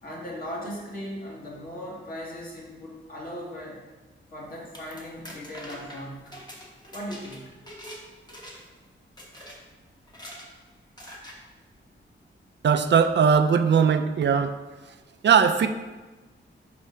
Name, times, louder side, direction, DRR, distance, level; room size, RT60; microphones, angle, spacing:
voice 1, 0.0-3.8 4.3-6.4 6.9-7.5, equal, 45° left, -4 dB, 1.6 m, -38 dB
sound 1, 4.5-8.0 8.3-8.8 9.2-9.6 10.1-10.5 11.0-11.4, equal, 20° left, 1.1 m, -44 dB
voice 2, 12.6-14.6 15.2-15.7, right 7 dB, 60° right, 9 dB, 0.4 m, -19 dB
4.9 x 4.2 x 5.6 m, 1.2 s
wide cardioid pair, 135°, 20 cm